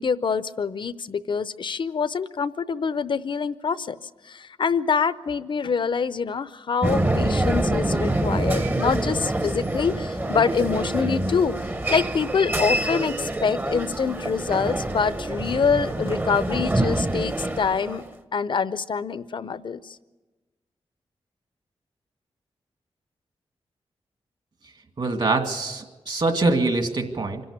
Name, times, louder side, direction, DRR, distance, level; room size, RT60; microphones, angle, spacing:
voice 1, 0.0-4.0 4.2-11.5 11.9-18.0 18.3-20.0, left 6 dB, 50° left, 15 dB, 0.6 m, -25 dB
sound 1, 6.8-18.1, right 1 dB, 20° right, 0.8 m, -26 dB
voice 2, 25.0-27.4, right 3 dB, 50° right, 5 dB, 2.1 m, -24 dB
25.5 x 12.0 x 8.7 m, 1.2 s
wide cardioid pair, 115°, 10 cm